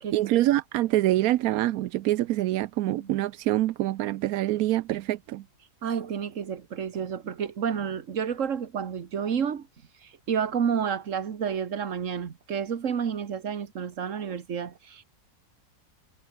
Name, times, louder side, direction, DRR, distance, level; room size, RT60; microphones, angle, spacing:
voice 1, 0.1-5.4, right 15 dB, 70° right, 0.9 m, -25 dB
voice 2, 5.8-9.7 10.0-15.0, right 7 dB, 45° right, 1.6 m, -30 dB
omnidirectional pair, 1.9 m